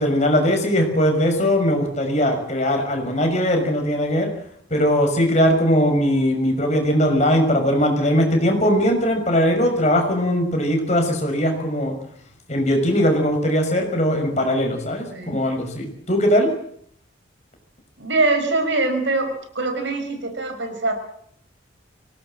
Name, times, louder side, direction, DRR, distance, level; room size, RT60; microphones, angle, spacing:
voice 1, 0.0-4.3 4.7-12.0 12.5-16.5, equal, 35° left, 4 dB, 6.0 m, -20 dB
voice 2, 18.0-20.9, right 2 dB, 70° right, 7 dB, 5.3 m, -23 dB
25.0 x 18.0 x 7.7 m, 0.66 s
head